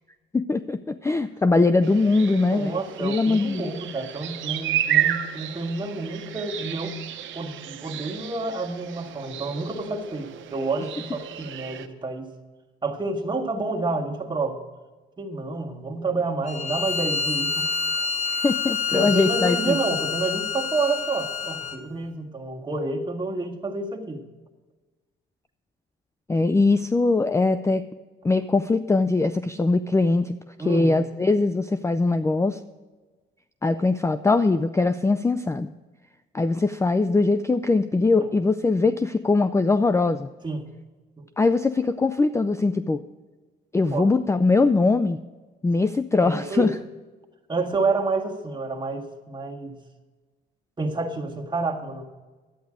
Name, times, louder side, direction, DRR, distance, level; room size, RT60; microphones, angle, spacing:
voice 1, 0.3-3.7 18.3-19.8 26.3-27.8 28.2-30.4 30.7-32.6 33.6-35.7 36.3-40.3 41.4-43.0 43.7-45.2 45.6-46.7, left 3 dB, 15° left, 12 dB, 0.4 m, -21 dB
sound 1, 1.8-11.9, right 11 dB, 75° right, 0.9 m, -32 dB
voice 2, 2.3-7.0 7.3-12.3 12.8-14.6 15.2-17.7 18.9-24.2 30.6-31.1 40.4-40.7 41.2-41.3 43.9-44.1 46.2-46.7 47.5-49.8 50.8-52.0, right 3 dB, 25° right, 1 dB, 1.8 m, -29 dB
Bowed string instrument, 16.5-21.8, left 4 dB, 35° left, 1.0 m, -27 dB
11.5 x 9.3 x 5.0 m, 1.3 s
cardioid pair, 90°, 20 cm